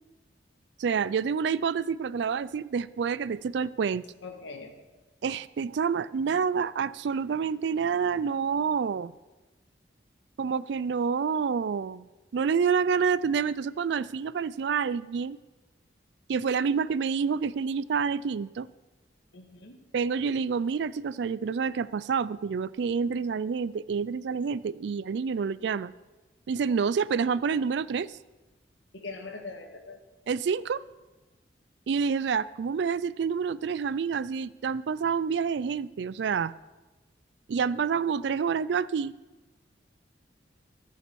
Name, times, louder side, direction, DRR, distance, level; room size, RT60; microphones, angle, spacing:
voice 1, 0.8-4.0 5.2-9.1 10.4-12.1 12.3-15.4 16.3-18.7 19.9-25.9 26.5-28.2 30.3-30.8 31.9-36.5 37.5-39.1, right 6 dB, 70° right, 19 dB, 0.3 m, -28 dB
voice 2, 4.2-4.7 19.3-19.7 28.9-30.0, left 3 dB, 85° left, 4 dB, 1.7 m, -41 dB
20.5 x 7.0 x 4.6 m, 1.2 s
head